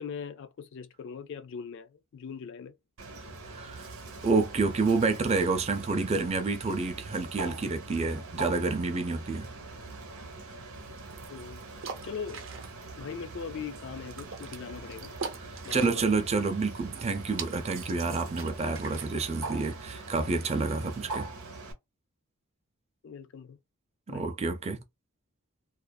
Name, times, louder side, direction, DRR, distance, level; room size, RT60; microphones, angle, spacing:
voice 1, 0.0-2.7 11.3-11.6 12.0-12.4 13.0-15.1 15.6-16.0 23.0-23.6 24.1-24.2, left 6 dB, 55° left, 0.4 m, -40 dB
Bird, 3.0-21.7, right 3 dB, 90° right, 0.9 m, -43 dB
voice 2, 3.5-3.9 4.2-9.5 15.5-21.3 24.1-24.8, right 3 dB, 30° right, 0.4 m, -29 dB
sound 1, 10.7-21.2, right 5 dB, 65° right, 0.6 m, -45 dB
2.4 x 2.4 x 2.2 m
head